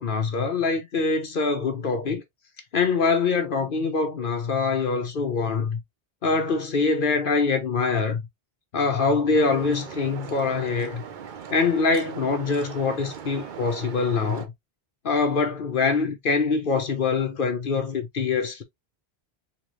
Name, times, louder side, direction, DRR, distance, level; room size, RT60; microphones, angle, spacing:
voice 1, 0.0-2.2 2.7-5.8 6.2-8.2 8.7-11.0 11.5-14.5 15.0-18.6, left 4 dB, 55° left, 0.9 m, -24 dB
sound 1, 9.3-14.5, right 7 dB, 55° right, 0.7 m, -39 dB
3.6 x 3.1 x 3.1 m
omnidirectional pair, 1.1 m